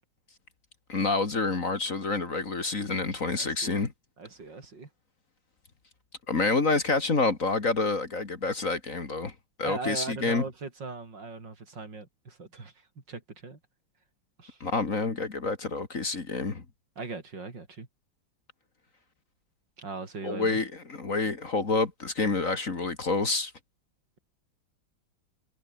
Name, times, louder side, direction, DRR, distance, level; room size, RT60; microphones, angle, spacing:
voice 1, 0.9-3.9 6.3-10.4 14.6-16.6 20.2-23.5, left 3 dB, 40° left, 2.6 m, -28 dB
voice 2, 3.3-3.8 4.2-4.9 9.6-12.7 13.1-13.6 14.4-14.6 17.0-17.9 19.8-20.6, right 4 dB, 65° right, 4.4 m, -39 dB
omnidirectional pair, 2.1 m